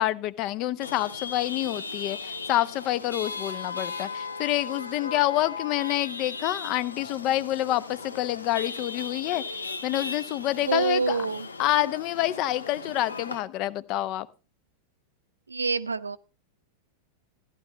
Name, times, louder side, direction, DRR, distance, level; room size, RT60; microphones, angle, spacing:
voice 1, 0.0-9.4 9.8-11.2 11.6-14.3, left 14 dB, 40° left, 18 dB, 0.8 m, -27 dB
Chatter / Vehicle horn car horn honking / Traffic noise roadway noise, 0.8-13.4, left 4 dB, 75° left, 1.1 m, -37 dB
voice 2, 10.6-11.5 15.5-16.2, right 4 dB, 75° right, 18 dB, 0.6 m, -26 dB
14.5 x 11.5 x 3.3 m, 0.34 s
figure-of-eight pair, 90°, 0 cm